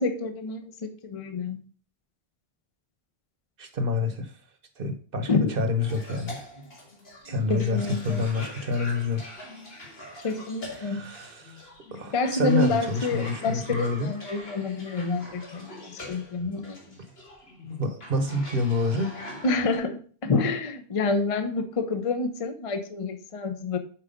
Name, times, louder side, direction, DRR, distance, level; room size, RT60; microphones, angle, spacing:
voice 1, 0.0-1.6 5.3-5.5 7.5-8.3 10.2-11.0 12.1-17.0 19.4-23.8, left 3 dB, 35° left, 8 dB, 0.7 m, -28 dB
voice 2, 3.6-4.3 4.8-6.5 7.2-9.2 10.7-14.1 17.6-19.1, left 3 dB, 60° right, 7 dB, 1.3 m, -28 dB
Cough, 5.8-19.8, left 1 dB, 75° left, 2.2 m, -43 dB
5.9 x 4.7 x 5.1 m, 0.41 s
omnidirectional pair, 1.0 m